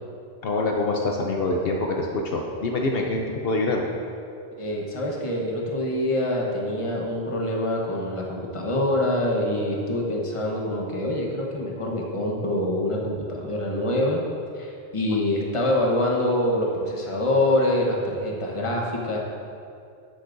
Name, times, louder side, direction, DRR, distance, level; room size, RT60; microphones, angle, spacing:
voice 1, 0.4-3.8, left 2 dB, 65° left, 0 dB, 0.9 m, -25 dB
voice 2, 4.6-14.2 14.5-19.2, left 1 dB, 30° left, -2 dB, 1.1 m, -25 dB
12.5 x 8.2 x 2.6 m, 2.5 s
omnidirectional pair, 1.1 m